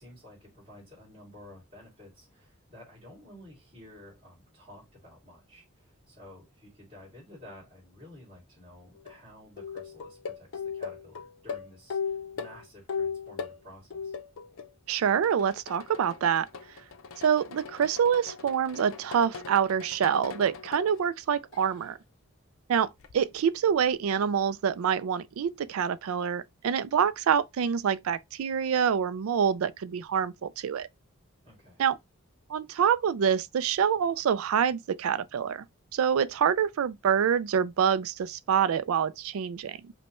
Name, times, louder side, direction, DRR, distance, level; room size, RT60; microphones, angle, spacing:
voice 1, 0.0-14.1 31.4-31.8, left 1 dB, 30° right, 2.3 m, -52 dB
sound 1, 9.0-9.2 9.6-13.6 13.9-14.7 15.0-21.0 21.5-21.9 23.0-23.1, left 6 dB, 80° left, 0.5 m, -38 dB
voice 2, 14.9-16.5 17.2-22.0 22.7-22.9 23.1-30.9 31.8-32.0 32.5-35.7 35.9-39.9, right 7 dB, 90° right, 0.4 m, -26 dB
5.2 x 2.2 x 2.9 m
head